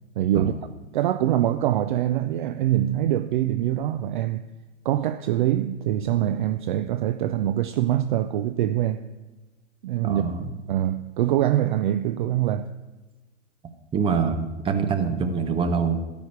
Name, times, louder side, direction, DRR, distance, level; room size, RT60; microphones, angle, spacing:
voice 1, 0.2-0.5 0.9-4.4 4.8-9.0 9.8-12.7, right 12 dB, 40° right, 0.5 m, -24 dB
voice 2, 10.0-10.4 13.9-16.0, right 5 dB, 15° right, 1.0 m, -24 dB
13.5 x 5.3 x 9.3 m
figure-of-eight pair, 115°, 37 cm